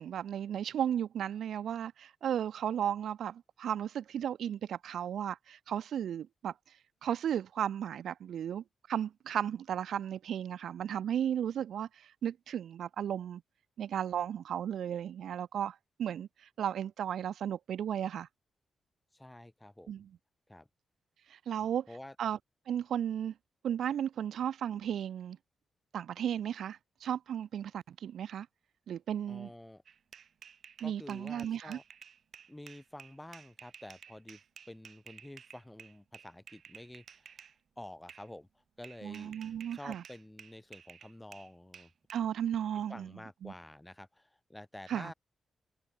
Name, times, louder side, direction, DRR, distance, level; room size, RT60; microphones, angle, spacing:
voice 1, 0.0-6.5 7.0-8.6 8.9-11.9 12.2-13.4 13.8-16.3 16.6-18.3 19.9-20.0 21.3-21.9 22.2-22.4 22.7-23.3 23.6-25.4 25.9-28.5 28.9-29.5 30.8-31.8 39.0-40.0 42.1-43.1 43.4-43.5 44.9-45.1, right 9 dB, 85° right, 0.6 m, -34 dB
voice 2, 19.1-20.0 20.5-20.7 21.6-22.2 29.3-29.8 30.8-31.8 32.5-34.4 34.7-37.5 37.8-38.5 38.8-39.4 39.7-41.9 42.9-45.1, left 1 dB, 10° left, 3.5 m, -49 dB
sound 1, 29.9-37.6 38.1-38.3 38.8-42.2, right 7 dB, 70° right, 3.3 m, -53 dB
cardioid pair, 85°, 0 cm